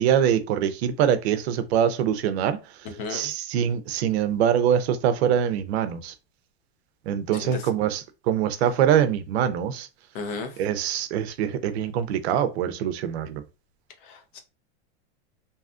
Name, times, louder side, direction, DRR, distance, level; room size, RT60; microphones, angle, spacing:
voice 1, 0.0-2.6 3.1-6.1 7.1-9.9 10.6-13.4, right 9 dB, 65° right, 0.5 m, -24 dB
voice 2, 2.8-3.3 7.3-7.7 10.1-10.6 14.0-14.4, left 4 dB, 50° left, 0.6 m, -35 dB
2.7 x 2.3 x 2.4 m
supercardioid pair, 160°, 34 cm